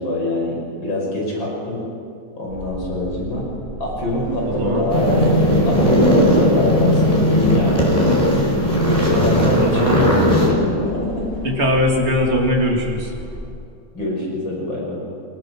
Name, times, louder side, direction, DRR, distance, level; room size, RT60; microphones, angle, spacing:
voice 1, 0.0-1.8 2.3-3.5 3.8-5.3 5.7-7.9 8.9-11.3 13.9-15.0, left 1 dB, 70° left, -2 dB, 7.0 m, -24 dB
sound 1, 2.5-13.5, right 1 dB, 50° right, 6.6 m, -35 dB
voice 2, 4.4-4.8 9.1-10.1 11.4-13.1, equal, 30° right, -1 dB, 3.3 m, -20 dB
sound 2, 4.9-10.5, equal, 20° left, 5.3 m, -17 dB
27.0 x 21.0 x 6.3 m, 2.4 s
omnidirectional pair, 2.2 m